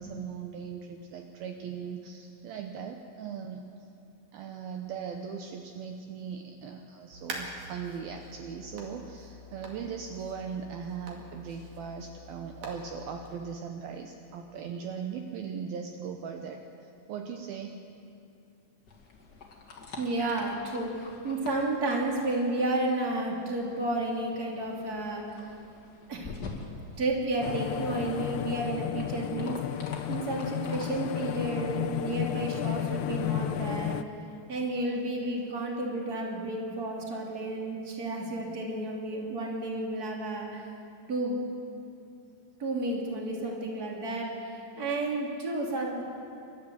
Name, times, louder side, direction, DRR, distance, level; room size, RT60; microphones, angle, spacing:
voice 1, 0.0-3.6 4.3-17.8 31.2-31.4, right 7 dB, 85° right, 4 dB, 2.1 m, -39 dB
sound 1, 7.1-13.4, right 1 dB, 50° right, 3.3 m, -45 dB
sound 2, 18.9-30.9, left 3 dB, 45° left, 1.2 m, -47 dB
voice 2, 20.0-25.2 26.1-26.3 27.0-29.8 30.1-34.0 34.5-40.7 41.1-41.4 42.6-46.0, right 2 dB, 25° right, -1 dB, 2.4 m, -31 dB
sound 3, 27.4-34.0, left 12 dB, 80° left, 2.7 m, -33 dB
29.5 x 12.5 x 7.8 m, 2.6 s
omnidirectional pair, 5.5 m